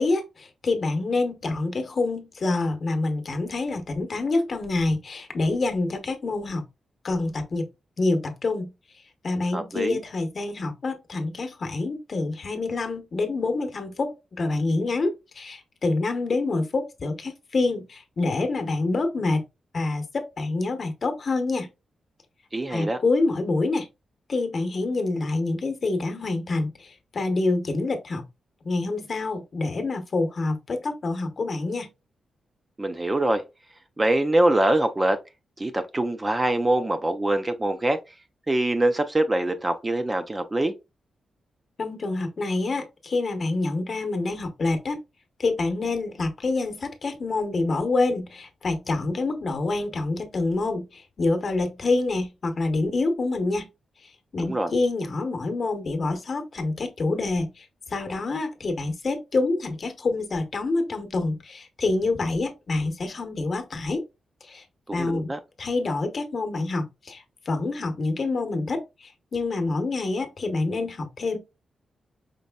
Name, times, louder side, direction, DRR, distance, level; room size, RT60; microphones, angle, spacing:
voice 1, 0.0-6.6 7.0-7.7 8.0-8.7 9.2-19.4 19.7-21.7 22.7-23.9 24.3-28.2 28.6-31.9 41.8-45.0 45.4-53.7 54.0-64.0 64.4-64.6 64.9-65.3 65.6-71.4, left 3 dB, 45° left, 0.9 m, -27 dB
voice 2, 9.5-10.0 22.5-23.0 32.8-33.4 34.0-35.2 35.6-38.0 38.5-40.7 54.4-54.7 64.9-65.4, right 1 dB, 20° right, 0.4 m, -24 dB
5.2 x 3.1 x 2.2 m
wide cardioid pair, 125°, 0 cm